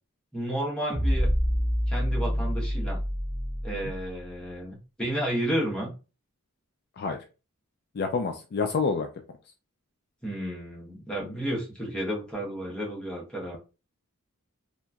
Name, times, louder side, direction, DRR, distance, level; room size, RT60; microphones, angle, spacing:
voice 1, 0.3-1.3 1.9-3.0 3.6-5.9 10.2-13.6, right 1 dB, 5° left, -4 dB, 1.0 m, -32 dB
sound 1, 0.9-4.3, equal, 25° right, 0.9 m, -27 dB
voice 2, 7.9-9.1, left 4 dB, 45° left, 5 dB, 0.3 m, -28 dB
2.9 x 2.5 x 2.3 m, 0.32 s
head